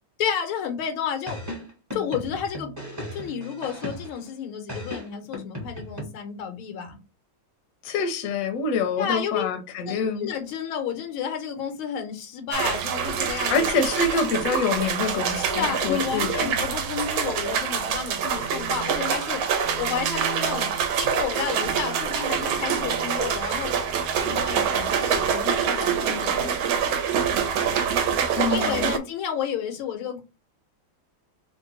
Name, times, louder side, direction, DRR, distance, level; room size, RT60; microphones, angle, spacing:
voice 1, 0.2-1.4 1.9-2.7 3.1-7.0 9.0-9.4 9.8-13.7 15.3-19.4 19.8-20.7 21.0-23.7 24.2-26.5 28.5-30.2, left 7 dB, 85° left, 1.7 m, -31 dB
sound 1, 1.3-4.3 4.7-6.0, left 1 dB, 15° right, 0.6 m, -36 dB
voice 2, 7.8-10.3 13.5-16.5 28.4-29.0, left 4 dB, 60° left, 0.9 m, -26 dB
sound 2, 12.5-29.0, right 7 dB, 75° right, 1.4 m, -25 dB
3.8 x 2.2 x 4.0 m
omnidirectional pair, 2.3 m